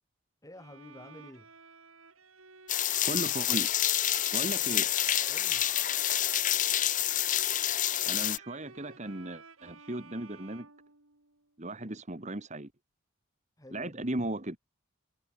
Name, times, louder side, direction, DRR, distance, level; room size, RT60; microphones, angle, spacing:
voice 1, 0.4-1.5 5.3-5.7 13.6-14.1, left 1 dB, 15° left, 4.5 m, -50 dB
Bowed string instrument, 0.5-11.5, right 4 dB, 80° right, 4.5 m, -53 dB
sound 1, 2.7-8.4, left 12 dB, 40° left, 0.7 m, -28 dB
voice 2, 3.0-3.7 4.3-4.9 8.1-10.7 11.6-12.7 13.7-14.6, right 1 dB, 35° right, 1.8 m, -36 dB
head